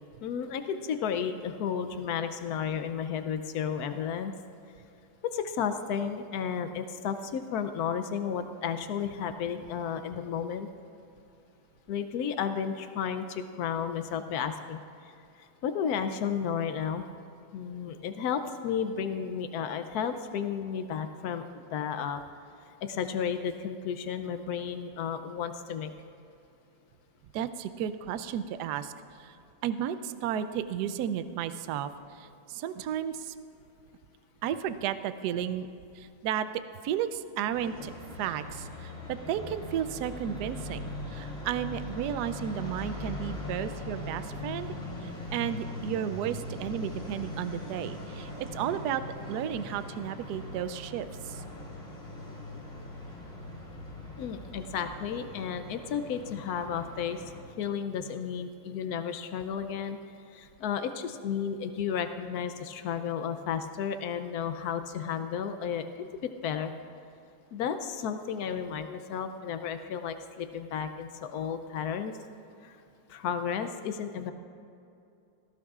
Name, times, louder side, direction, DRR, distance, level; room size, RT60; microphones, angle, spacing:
voice 1, 0.2-4.3 5.2-10.7 11.9-15.1 15.4-17.0 17.5-22.2 22.8-25.9 54.2-57.2 57.6-60.0 60.3-66.7 67.5-72.1 72.6-72.7 73.1-74.3, left 7 dB, 80° left, 9 dB, 0.8 m, -33 dB
voice 2, 27.3-28.9 29.2-29.4 29.6-33.3 34.4-35.7 35.9-36.5 36.8-37.9 38.2-44.7 45.0-49.0 49.3-51.4, right 9 dB, 75° right, 12 dB, 0.9 m, -33 dB
sound 1, 37.5-57.4, left 1 dB, 30° left, 2.7 m, -40 dB
18.5 x 15.5 x 2.4 m, 2.6 s
omnidirectional pair, 2.2 m